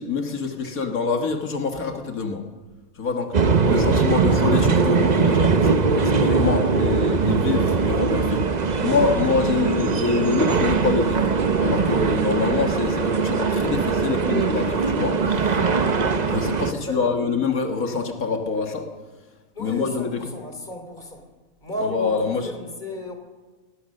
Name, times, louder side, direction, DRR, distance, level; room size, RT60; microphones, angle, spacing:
voice 1, 0.0-2.5 3.0-3.4 3.7-8.5 8.8-11.3 11.6-15.6 16.3-18.9 19.6-20.3 21.8-22.5, left 4 dB, 80° left, 3 dB, 2.1 m, -25 dB
sound 1, 3.3-16.7, right 5 dB, 35° right, 0.9 m, -21 dB
voice 2, 16.7-17.3 19.5-21.3 21.6-23.1, left 1 dB, 35° left, 5 dB, 3.2 m, -34 dB
20.5 x 19.5 x 6.6 m, 1.3 s
omnidirectional pair, 1.5 m